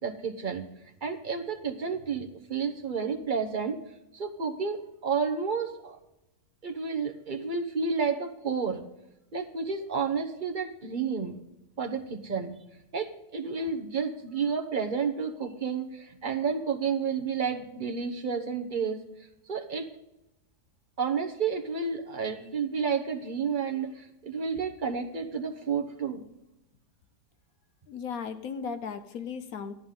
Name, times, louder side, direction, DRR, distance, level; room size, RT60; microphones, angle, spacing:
voice 1, 0.0-0.6 1.0-3.8 4.1-6.0 6.6-8.8 9.3-11.4 11.8-12.5 12.9-19.0 19.5-19.8 21.0-26.2, right 5 dB, 35° right, 3 dB, 1.0 m, -31 dB
voice 2, 27.9-29.7, left 6 dB, 60° left, 10 dB, 1.1 m, -36 dB
11.0 x 11.0 x 3.8 m, 0.90 s
omnidirectional pair, 1.8 m